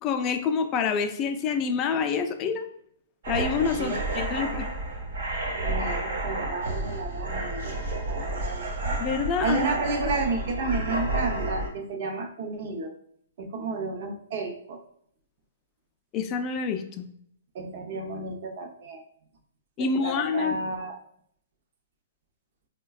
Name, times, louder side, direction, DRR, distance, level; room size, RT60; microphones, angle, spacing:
voice 1, 0.0-2.7 3.3-4.7 9.0-9.6 16.1-17.1 19.8-20.6, left 6 dB, 30° left, 7 dB, 0.4 m, -27 dB
sound 1, 3.2-11.7, right 2 dB, 70° right, 1.0 m, -30 dB
voice 2, 3.8-4.2 4.4-4.6 5.6-7.8 8.1-8.7 9.4-12.9 13.4-14.8 17.5-19.0 19.8-21.0, right 3 dB, 55° right, 4 dB, 0.6 m, -32 dB
4.4 x 2.2 x 2.3 m, 0.67 s
hypercardioid pair, 130°, 0 cm